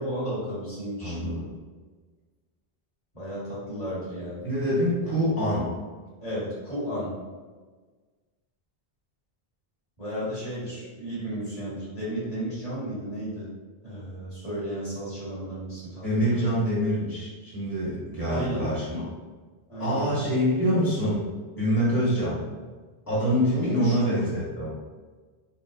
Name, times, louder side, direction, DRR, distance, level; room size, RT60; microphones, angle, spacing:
voice 1, 0.0-1.4 3.1-4.5 6.2-7.1 10.0-13.5 13.8-16.5 18.2-18.6 19.7-20.3 23.5-24.2, right 1 dB, 40° left, -9 dB, 1.4 m, -33 dB
voice 2, 1.0-1.4 4.4-5.7 16.0-19.0 19.8-21.2 21.6-22.4 23.1-24.7, equal, 20° left, -10 dB, 1.4 m, -25 dB
3.6 x 2.4 x 2.4 m, 1.4 s
omnidirectional pair, 1.1 m